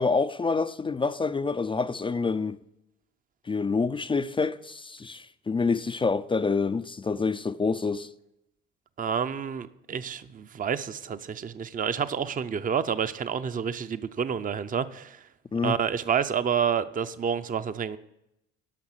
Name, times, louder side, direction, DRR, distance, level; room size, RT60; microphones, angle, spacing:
voice 1, 0.0-2.6 3.5-8.1 15.5-15.8, left 4 dB, 15° left, 0.4 m, -27 dB
voice 2, 9.0-15.3 15.6-18.0, right 7 dB, 25° right, 0.6 m, -29 dB
12.0 x 5.9 x 7.3 m
supercardioid pair, 85°, 31 cm